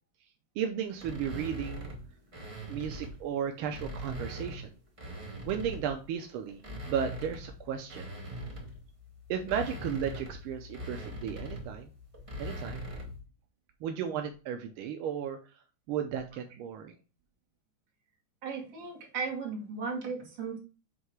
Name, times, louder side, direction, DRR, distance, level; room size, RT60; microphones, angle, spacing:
voice 1, 0.6-1.9 2.7-4.7 5.5-6.6 6.9-8.1 9.3-11.9 12.4-12.8 13.8-15.6 15.9-16.9, right 8 dB, 90° right, 5 dB, 1.6 m, -34 dB
sound 1, 1.0-3.2 3.6-6.0 6.5-13.2, equal, 20° right, 0.9 m, -41 dB
voice 2, 18.4-20.6, right 5 dB, 65° right, -2 dB, 2.6 m, -36 dB
7.9 x 2.8 x 4.6 m, 0.34 s
omnidirectional pair, 2.3 m